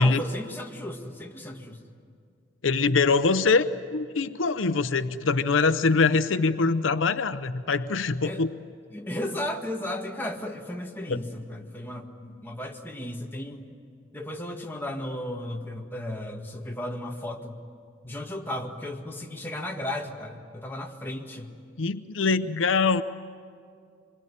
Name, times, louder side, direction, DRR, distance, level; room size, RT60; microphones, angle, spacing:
voice 1, 0.0-1.8 8.2-8.4 8.9-13.6 14.1-17.6 18.0-21.5, left 1 dB, 10° left, 1 dB, 1.9 m, -35 dB
voice 2, 2.6-8.5 11.1-11.2 21.8-23.0, left 4 dB, 80° left, 12 dB, 0.7 m, -23 dB
26.0 x 22.0 x 10.0 m, 2.2 s
head